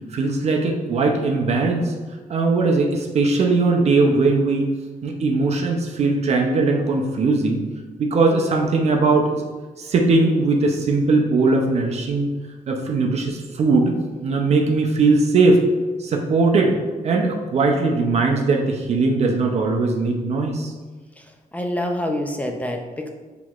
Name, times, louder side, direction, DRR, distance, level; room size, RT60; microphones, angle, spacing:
voice 1, 0.1-1.9 2.3-4.7 5.0-7.6 8.0-9.4 9.8-12.3 12.7-14.0 14.2-15.6 16.0-16.7 17.0-20.7, right 3 dB, 50° right, 1 dB, 0.5 m, -19 dB
voice 2, 21.5-23.1, left 1 dB, 10° left, 3 dB, 0.3 m, -26 dB
6.1 x 2.9 x 2.4 m, 1.3 s
wide cardioid pair, 165°, 14 cm